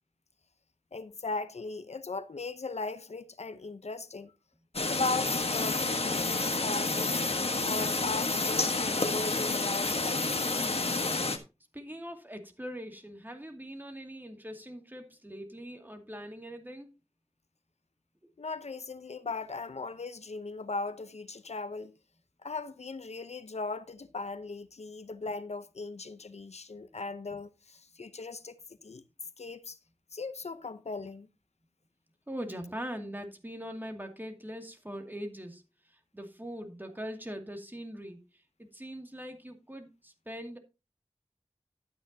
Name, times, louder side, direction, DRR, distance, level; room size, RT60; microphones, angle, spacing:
voice 1, 0.9-4.3 4.8-7.1 7.6-10.4 18.4-21.9 22.4-29.0 29.4-29.8 30.1-31.3, left 3 dB, 80° left, 0.7 m, -38 dB
sound 1, 4.7-11.4, left 3 dB, 65° left, 1.3 m, -29 dB
voice 2, 11.7-16.9 32.3-38.2 38.6-40.6, equal, 15° right, 2.4 m, -42 dB
12.0 x 9.0 x 2.8 m
wide cardioid pair, 60°, 11 cm